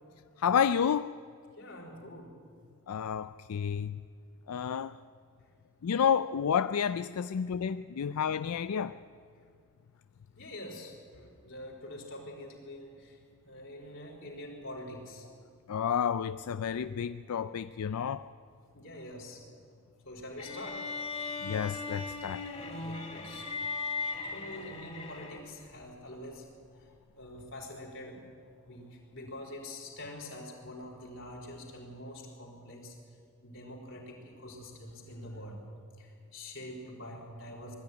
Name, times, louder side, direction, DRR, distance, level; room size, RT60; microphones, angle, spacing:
voice 1, 0.4-1.2 2.9-4.0 4.5-5.0 5.8-9.0 15.7-18.3 21.4-22.6, left 7 dB, 85° left, 0.4 m, -30 dB
voice 2, 1.5-2.3 9.4-9.5 10.3-15.2 18.7-19.4 20.0-20.9 22.7-23.4 23.9-26.4 26.8-26.9 27.1-28.2 28.7-33.0 33.4-35.6 36.0-37.7, left 1 dB, 60° left, 4.6 m, -45 dB
sound 1, 20.4-25.6, left 4 dB, 30° left, 2.9 m, -38 dB
20.5 x 14.0 x 9.6 m
head